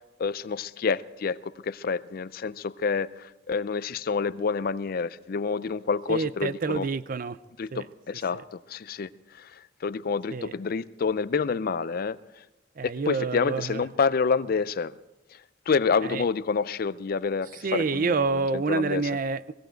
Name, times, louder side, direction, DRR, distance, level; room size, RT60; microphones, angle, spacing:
voice 1, 0.0-6.9 7.6-12.2 13.1-14.9 15.7-19.1, left 5 dB, 50° left, 0.4 m, -28 dB
voice 2, 6.1-7.4 7.7-7.9 8.3-8.4 10.3-10.5 12.8-13.8 16.0-16.2 17.5-19.5, right 4 dB, 45° right, 0.5 m, -28 dB
17.5 x 16.5 x 4.4 m
head